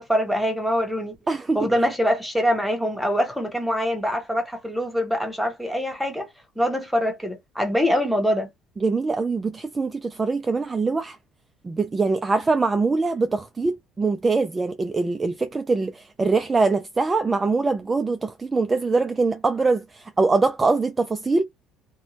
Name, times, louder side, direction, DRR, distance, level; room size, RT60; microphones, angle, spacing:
voice 1, 0.0-1.2 1.5-6.3 6.6-8.5, equal, ahead, 0.8 m, -24 dB
voice 2, 1.3-1.7 8.8-11.2 11.6-21.4, right 3 dB, 20° right, 0.3 m, -23 dB
2.5 x 2.2 x 3.0 m
cardioid pair, 110°, 0 cm